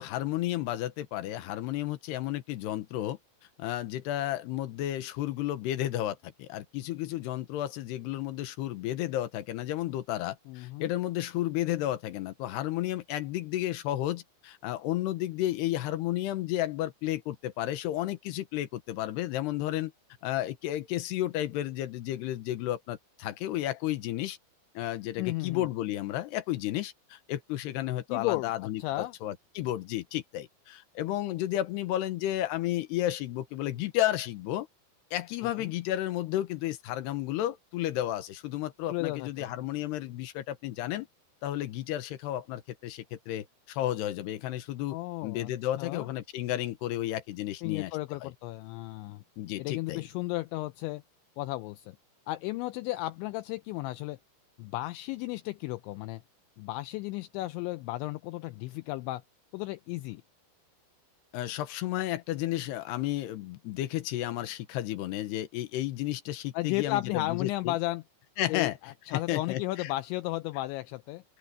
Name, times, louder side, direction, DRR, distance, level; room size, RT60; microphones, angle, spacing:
voice 1, 0.0-3.2 3.6-19.9 20.2-24.4 24.7-34.7 35.1-41.1 41.4-45.0 45.2-47.9 48.2-48.3 49.4-50.0 61.3-67.8 68.4-68.8 69.1-69.9, left 14 dB, 70° left, 2.7 m, -32 dB
voice 2, 10.5-10.9 25.2-25.7 28.1-28.5 28.8-29.1 35.6-35.7 38.9-39.5 44.9-45.5 45.8-46.1 47.6-49.2 49.6-51.0 51.4-52.0 52.3-54.2 54.6-56.2 56.6-59.2 59.5-60.2 66.5-68.0 68.5-71.2, left 18 dB, 90° left, 2.6 m, -34 dB
open air
omnidirectional pair, 5.9 m